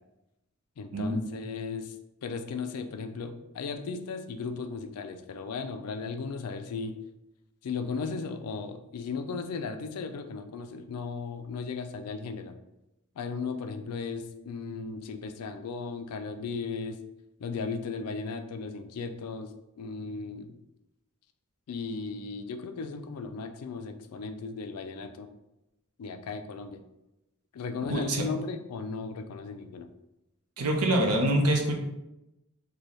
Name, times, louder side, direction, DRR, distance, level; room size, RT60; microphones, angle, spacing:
voice 1, 0.8-1.9 2.2-6.9 7.6-12.6 13.2-17.0 17.4-19.5 19.8-20.6 21.7-25.3 26.0-26.8 27.5-29.9, left 4 dB, 80° left, 8 dB, 0.4 m, -36 dB
voice 2, 27.9-28.2 30.6-31.7, right 1 dB, 80° right, 2 dB, 0.7 m, -25 dB
4.0 x 2.2 x 3.1 m, 0.91 s
head